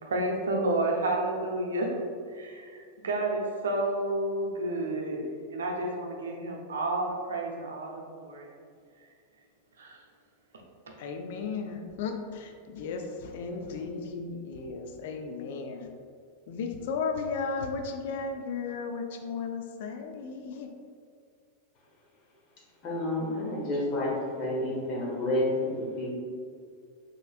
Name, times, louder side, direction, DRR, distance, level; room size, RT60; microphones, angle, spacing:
voice 1, 0.0-2.0 2.3-5.2 5.5-8.5 9.8-10.0 10.9-11.0, right 2 dB, 65° right, 0 dB, 0.7 m, -30 dB
voice 2, 11.0-15.9 16.5-20.7, left 5 dB, 55° left, 4 dB, 0.4 m, -35 dB
voice 3, 22.8-24.1 24.4-26.1, left 1 dB, 35° left, -4 dB, 1.5 m, -29 dB
5.4 x 3.8 x 2.4 m, 2.2 s
figure-of-eight pair, 90°, 0 cm